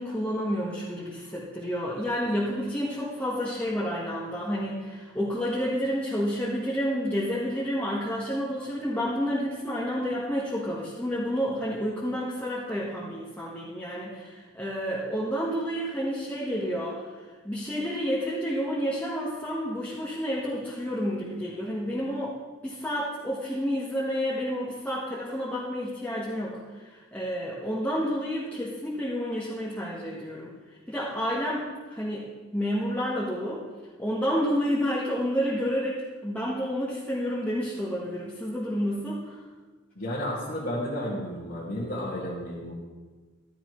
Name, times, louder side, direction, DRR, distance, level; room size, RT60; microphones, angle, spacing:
voice 1, 0.0-17.1 17.4-22.3 22.6-30.5 30.9-33.6 34.0-39.4, equal, 10° left, -7 dB, 1.2 m, -30 dB
voice 2, 40.0-42.7, equal, 50° left, -6 dB, 1.9 m, -32 dB
14.5 x 12.0 x 3.1 m, 1.3 s
head